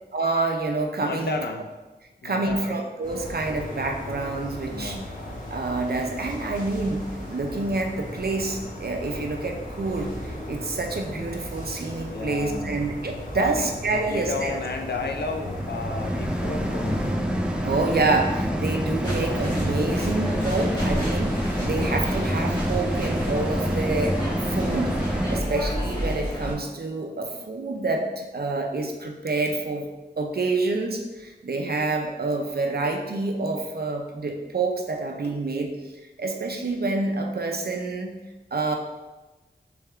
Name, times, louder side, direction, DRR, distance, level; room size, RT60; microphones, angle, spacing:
voice 1, 0.1-1.4 2.2-5.0 5.5-7.0 7.3-14.6 17.6-24.9 25.3-29.9 30.2-35.7 36.2-38.1 38.5-38.7, right 3 dB, 60° right, 2 dB, 0.6 m, -27 dB
voice 2, 1.0-1.7 2.2-2.8 4.7-5.1 12.1-12.9 13.3-17.2 20.7-20.9 21.6-21.9 25.4-25.6 35.2-35.3, left 3 dB, 65° left, 4 dB, 0.5 m, -33 dB
sound 1, 3.0-17.1, left 1 dB, 50° left, 1.0 m, -36 dB
sound 2, 14.3-25.4, equal, 5° right, 0.5 m, -27 dB
Pedestrian street, 19.0-26.5, equal, 25° left, 1.4 m, -32 dB
3.5 x 3.4 x 3.4 m, 1.1 s
wide cardioid pair, 65°, 18 cm